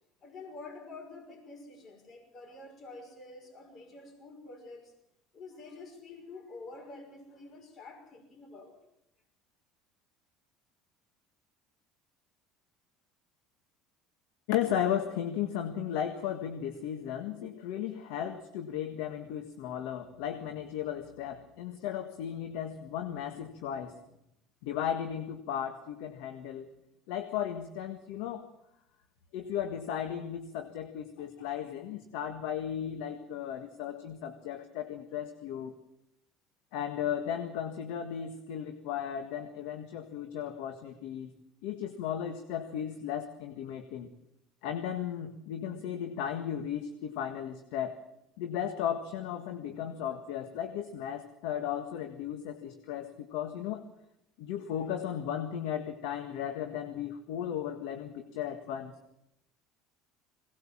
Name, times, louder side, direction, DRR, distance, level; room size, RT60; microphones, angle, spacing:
voice 1, 0.2-4.9 5.3-8.7 54.7-54.9, left 3 dB, 45° left, 3 dB, 5.9 m, -48 dB
voice 2, 14.5-24.0 24.6-26.7 27.1-28.5 29.3-35.7 36.7-41.3 41.6-44.1 44.6-48.0 48.4-53.8 54.4-58.9, left 9 dB, 70° left, 7 dB, 1.6 m, -35 dB
21.5 x 18.5 x 7.5 m, 0.83 s
hypercardioid pair, 75°, 0 cm